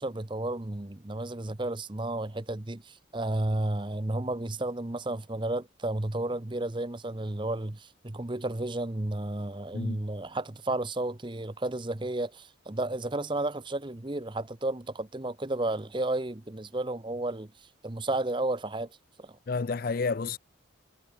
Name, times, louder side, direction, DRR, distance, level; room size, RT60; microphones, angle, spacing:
voice 1, 0.0-17.5 17.8-18.9 19.2-19.4, right 2 dB, 25° right, 0.8 m, -32 dB
voice 2, 19.5-20.4, left 4 dB, 45° left, 0.5 m, -30 dB
head